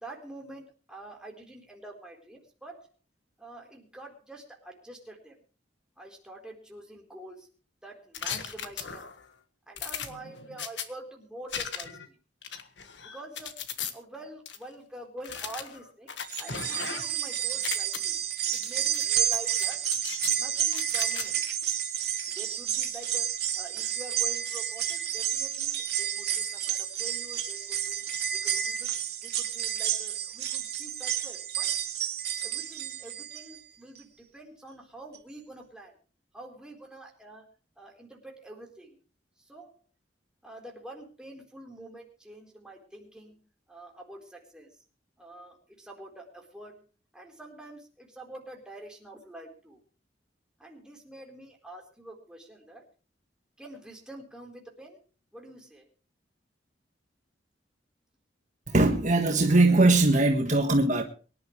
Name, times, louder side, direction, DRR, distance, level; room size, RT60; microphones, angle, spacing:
voice 1, 0.0-2.9 3.4-5.4 6.0-7.5 7.8-9.1 9.7-12.2 13.1-13.5 13.9-18.2 18.5-19.8 20.4-21.4 22.4-23.3 23.5-28.0 28.3-28.9 29.2-31.7 32.4-35.9 36.3-37.5 37.8-39.0 39.5-39.8 40.4-43.4 43.7-44.7 45.2-46.8 47.1-49.8 50.6-52.8 53.6-55.0 55.3-55.9, right 1 dB, 5° right, 0 dB, 4.1 m, -46 dB
sound 1, 8.1-9.2 9.8-10.9 11.5-12.1 12.4-13.9 14.5-14.6 15.2-17.2 17.5-18.0 18.5-19.1 19.3-20.4 20.7-21.3, left 7 dB, 75° left, 1.6 m, -37 dB
sound 2, 16.2-33.6 34.0-34.1 35.1-35.2, right 10 dB, 60° right, 2.6 m, -30 dB
voice 2, 58.7-61.0, right 2 dB, 45° right, 3 dB, 1.6 m, -21 dB
24.0 x 11.0 x 3.3 m, 0.37 s
head